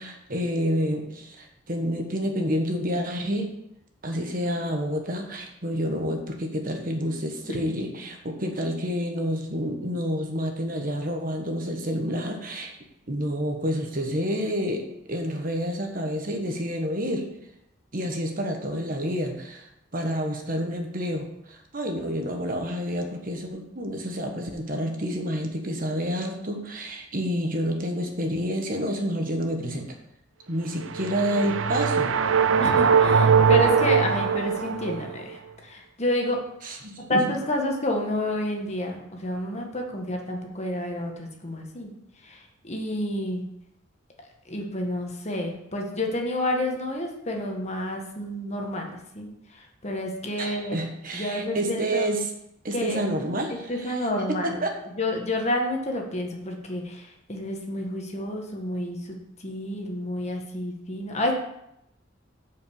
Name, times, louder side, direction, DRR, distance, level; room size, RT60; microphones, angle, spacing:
voice 1, 0.0-3.5 4.0-12.7 13.1-17.3 17.9-30.0 30.5-32.2 36.6-37.2 50.4-52.3 52.6-54.8, equal, 45° right, 3 dB, 1.3 m, -29 dB
sound 1, 30.8-35.1, right 6 dB, 90° right, 0.5 m, -21 dB
voice 2, 32.6-36.4 37.1-41.9 42.2-43.4 44.5-50.8 51.1-52.1 52.7-53.0 53.5-54.6 55.0-61.3, left 1 dB, 35° left, 1 dB, 1.5 m, -29 dB
7.6 x 5.3 x 7.1 m, 0.81 s
head